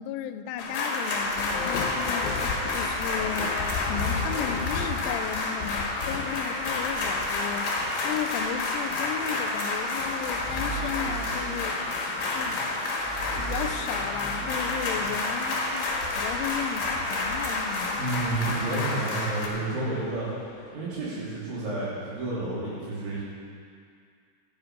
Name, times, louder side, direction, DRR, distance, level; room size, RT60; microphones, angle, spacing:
voice 1, 0.0-2.3 2.7-11.8 12.3-12.7 13.3-18.0, left 9 dB, 90° left, 10 dB, 3.0 m, -35 dB
sound 1, 0.6-19.5, left 2 dB, 55° left, 2.0 m, -30 dB
sound 2, 1.3-20.8, left 5 dB, 75° left, 2.3 m, -38 dB
sound 3, 10.2-15.3, right 3 dB, 5° left, 1.5 m, -39 dB
voice 2, 18.0-20.3 20.7-23.2, right 2 dB, 75° right, -8 dB, 5.8 m, -30 dB
13.0 x 10.5 x 5.2 m, 2.3 s
omnidirectional pair, 5.4 m